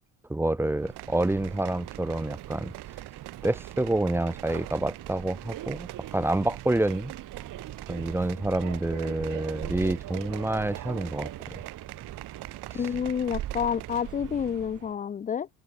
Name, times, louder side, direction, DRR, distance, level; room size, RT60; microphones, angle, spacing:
voice 1, 0.3-2.7 3.4-7.1 7.9-11.6 12.7-12.9, right 1 dB, 5° right, 0.9 m, -28 dB
Subway metro underground, 0.6-14.9, right 13 dB, 55° right, 1.9 m, -41 dB
sound 1, 0.9-14.1 14.4-14.5, right 19 dB, 80° right, 7.4 m, -46 dB
voice 2, 12.7-15.5, left 8 dB, 20° left, 0.5 m, -29 dB
cardioid pair, 140°, 39 cm